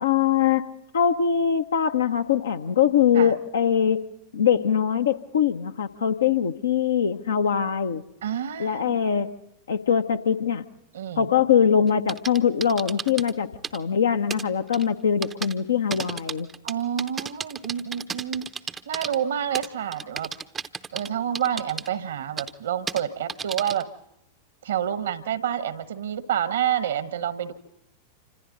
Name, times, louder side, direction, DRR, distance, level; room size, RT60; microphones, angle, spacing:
voice 1, 0.0-4.0 4.3-8.0 8.6-9.3 9.7-10.6 11.2-16.5, left 8 dB, 65° left, 8 dB, 1.0 m, -22 dB
voice 2, 8.2-9.0 10.9-11.3 16.6-18.5 18.9-20.3 20.9-23.9 24.6-27.5, right 9 dB, 65° right, 14 dB, 1.2 m, -28 dB
sound 1, 11.9-13.3 13.6-13.8 14.3-14.4 14.7-14.8 15.2-15.5 15.9-19.2 19.5-21.1 21.3-21.9 22.4-22.5 22.9-23.0 23.3-23.8, right 6 dB, 20° right, 0.7 m, -33 dB
27.5 x 25.5 x 4.0 m, 0.86 s
figure-of-eight pair, 90°, 0 cm